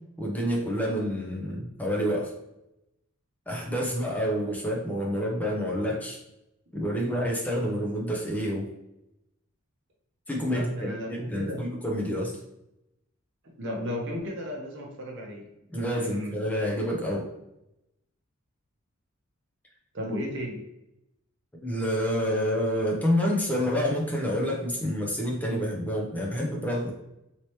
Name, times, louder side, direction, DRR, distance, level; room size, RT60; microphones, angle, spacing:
voice 1, 0.2-2.3 3.5-6.2 6.7-8.7 10.3-12.4 15.7-17.3 21.6-26.9, equal, 5° left, -2 dB, 0.6 m, -28 dB
voice 2, 10.5-11.6 13.6-16.5 19.9-20.7, left 1 dB, 60° right, -1 dB, 0.8 m, -35 dB
3.1 x 2.9 x 3.0 m, 0.87 s
head